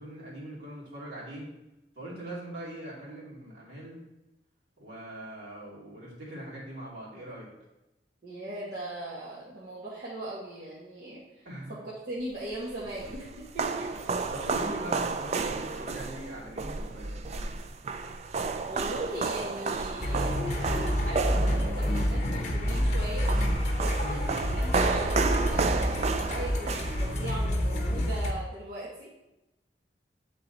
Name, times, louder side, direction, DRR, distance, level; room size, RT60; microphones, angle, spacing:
voice 1, 0.0-1.5 1.9-4.0 4.8-7.5 11.4-11.8 13.9-17.2 24.0-24.4, right 1 dB, 75° right, -6 dB, 2.6 m, -42 dB
voice 2, 8.2-13.9 18.7-23.3 24.1-29.1, right 1 dB, 55° right, -8 dB, 1.3 m, -39 dB
sound 1, 12.5-27.6, right 4 dB, 40° right, 0.3 m, -32 dB
sound 2, 20.0-28.3, equal, 40° left, 0.7 m, -28 dB
8.3 x 3.9 x 4.0 m, 0.95 s
head